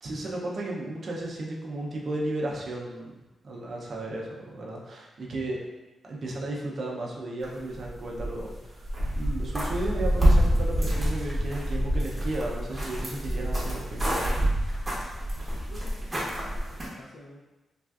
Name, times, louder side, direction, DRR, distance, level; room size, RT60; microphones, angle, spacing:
voice 1, 0.0-3.2 3.4-5.6 6.0-8.9 9.1-14.8, right 1 dB, 50° right, -2 dB, 0.5 m, -34 dB
sound 1, 7.4-8.6 8.8-16.9, equal, 10° right, 0.7 m, -27 dB
voice 2, 15.4-17.4, left 1 dB, 60° left, -1 dB, 0.5 m, -49 dB
3.3 x 2.4 x 2.3 m, 1.1 s
wide cardioid pair, 145°, 0 cm